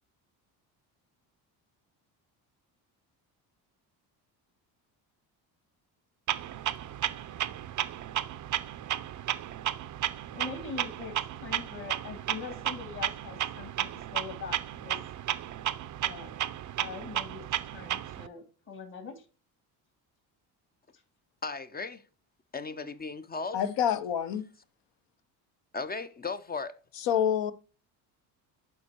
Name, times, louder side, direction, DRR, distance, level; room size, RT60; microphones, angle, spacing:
Clock, 6.3-18.3, right 12 dB, 40° right, 0.5 m, -34 dB
voice 1, 10.3-11.1 11.4-15.0 16.0-16.3 16.8-17.5 17.7-19.2, left 5 dB, 45° left, 2.2 m, -42 dB
voice 2, 21.4-22.0 22.5-23.6 25.7-26.8, left 4 dB, 20° left, 0.5 m, -36 dB
voice 3, 23.5-24.5 27.0-27.5, left 9 dB, 65° left, 0.8 m, -27 dB
12.0 x 4.3 x 2.8 m
supercardioid pair, 70°, 46 cm